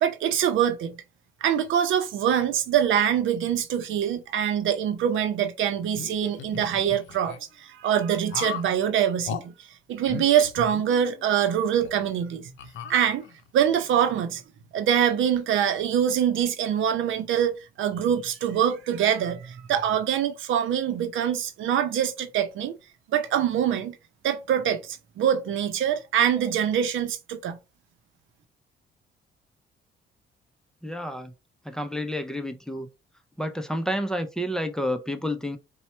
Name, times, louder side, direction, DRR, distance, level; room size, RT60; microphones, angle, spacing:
voice 1, 0.0-0.9 1.4-9.5 9.9-12.5 12.9-13.2 13.5-14.4 14.7-22.7 23.1-24.0 24.2-27.6, right 9 dB, 80° right, 0.7 m, -24 dB
sound 1, 5.9-7.4 8.3-8.7 9.2-9.4 10.0-11.3 11.8-11.9 12.6-13.5, left 8 dB, 70° left, 0.6 m, -37 dB
voice 2, 30.8-31.3 31.6-32.9 33.4-35.6, equal, 5° left, 0.6 m, -30 dB
4.2 x 2.3 x 4.3 m
cardioid pair, 90°, 20 cm